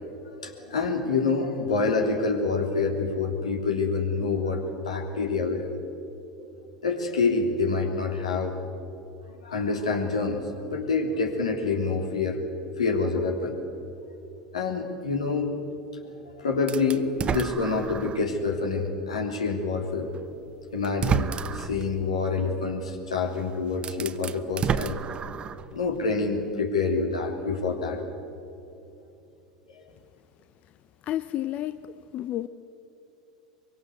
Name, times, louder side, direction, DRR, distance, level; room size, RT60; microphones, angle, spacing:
voice 1, 0.0-5.7 6.4-6.5 6.8-8.5 9.4-12.4 12.8-13.6 14.5-15.6 16.0-20.1 20.7-25.0 25.7-28.0 29.7-29.8, left 4 dB, 80° left, 3 dB, 3.3 m, -27 dB
sound 1, 16.7-18.3 18.9-19.0 20.2-20.3 20.8-21.8 23.3-23.4 23.7-25.7, right 7 dB, 30° right, 0.9 m, -30 dB
voice 2, 31.0-31.8 32.1-32.5, left 13 dB, 45° left, 12 dB, 0.7 m, -30 dB
24.0 x 23.0 x 8.1 m, 2.8 s
figure-of-eight pair, 80°, 3 cm